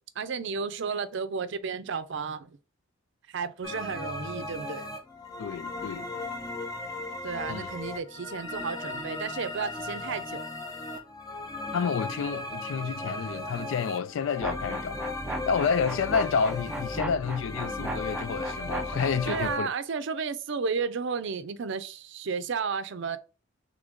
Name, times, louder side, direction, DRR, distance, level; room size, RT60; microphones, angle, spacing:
voice 1, 0.2-2.6 3.3-4.9 7.2-10.4 19.3-23.2, right 5 dB, 65° right, 0.5 m, -33 dB
sound 1, 3.6-19.6, left 2 dB, 20° left, 0.7 m, -37 dB
voice 2, 5.4-6.1 7.5-7.7 11.7-15.0 15.5-19.7, left 6 dB, 70° left, 0.3 m, -29 dB
sound 2, 14.4-19.5, right 1 dB, 5° right, 0.4 m, -36 dB
3.7 x 3.3 x 3.6 m
head